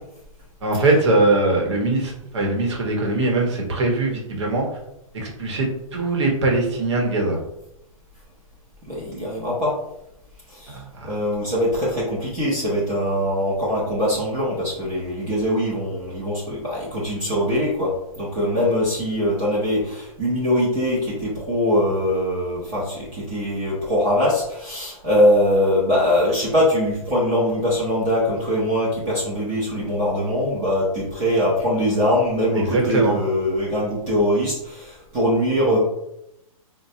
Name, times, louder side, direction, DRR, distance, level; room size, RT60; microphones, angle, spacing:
voice 1, 0.6-4.7 5.1-7.4 10.7-11.1 32.6-33.1, right 2 dB, 50° right, 1 dB, 0.9 m, -21 dB
voice 2, 8.9-9.7 10.5-35.8, equal, 15° right, -7 dB, 0.5 m, -22 dB
4.1 x 2.1 x 2.7 m, 0.82 s
hypercardioid pair, 170°, 19 cm